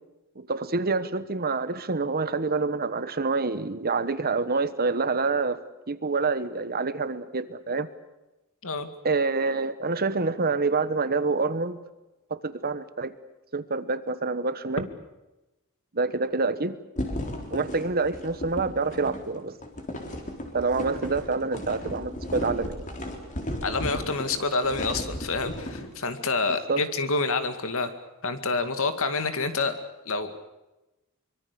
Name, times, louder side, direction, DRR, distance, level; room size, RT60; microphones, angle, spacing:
voice 1, 0.4-5.6 5.9-7.9 9.0-11.8 12.3-13.1 13.5-14.8 15.9-16.8 17.5-19.5 20.5-22.8 26.5-26.8, right 3 dB, 45° right, 13 dB, 1.2 m, -27 dB
sound 1, 17.0-25.9, left 1 dB, 35° left, 3.8 m, -35 dB
voice 2, 23.6-27.9 28.2-29.7 30.1-30.3, left 3 dB, 65° left, 9 dB, 2.3 m, -27 dB
24.5 x 23.5 x 6.9 m, 1.0 s
head